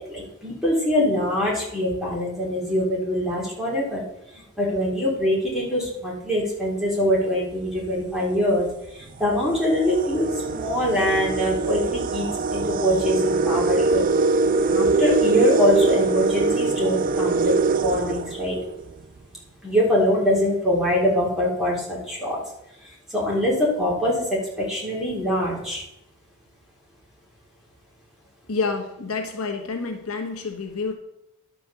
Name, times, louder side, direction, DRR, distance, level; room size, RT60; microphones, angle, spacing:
voice 1, 0.1-4.0 4.3-8.7 8.9-12.3 12.5-14.0 14.7-18.6 19.6-22.4 23.1-24.3 24.6-25.8, equal, ahead, -5 dB, 3.9 m, -23 dB
sound 1, 7.6-7.8 8.7-8.8 9.2-19.0, right 3 dB, 40° right, 0.5 m, -23 dB
voice 2, 28.5-30.9, left 4 dB, 70° left, 4 dB, 1.3 m, -28 dB
11.0 x 5.4 x 7.1 m, 0.83 s
head